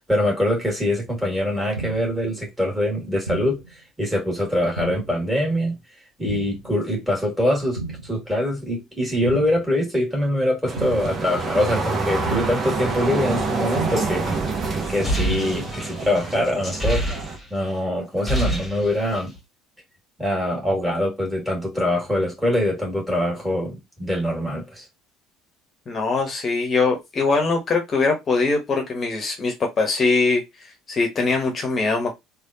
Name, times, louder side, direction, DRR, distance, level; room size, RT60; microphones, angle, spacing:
voice 1, 0.0-5.8 6.2-14.3 14.9-17.0 17.5-19.4 20.2-24.8, left 1 dB, 5° right, 1.9 m, -24 dB
sound 1, 1.8-2.2 3.3-3.7 4.8-5.2 6.3-6.7 7.8-8.2 9.3-9.7 10.8-11.2 12.3-12.7 13.8-14.2 15.3-15.7, right 3 dB, 85° right, 0.4 m, -33 dB
sound 2, 10.7-17.4, right 3 dB, 35° right, 0.8 m, -27 dB
sound 3, 14.8-17.7 18.0-19.4, equal, 15° left, 1.4 m, -27 dB
voice 2, 25.9-32.2, left 3 dB, 35° left, 1.0 m, -22 dB
3.3 x 2.4 x 2.7 m
figure-of-eight pair, 60°, 0 cm